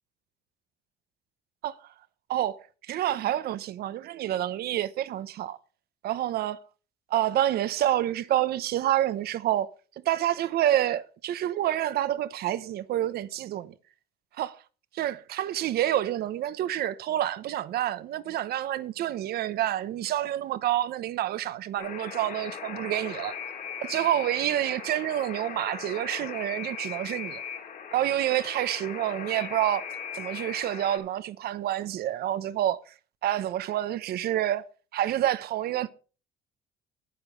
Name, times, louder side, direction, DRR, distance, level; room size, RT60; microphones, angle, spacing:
voice 1, 2.3-5.6 6.0-6.6 7.1-9.7 10.0-13.7 14.4-14.6 14.9-23.4 23.8-27.4 27.9-29.8 30.1-32.9 33.2-34.7 34.9-35.9, right 12 dB, 70° right, 1.0 m, -28 dB
Alarm, 21.8-31.0, left 7 dB, 55° left, 3.1 m, -39 dB
9.9 x 9.5 x 5.3 m
cardioid pair, 110°, 17 cm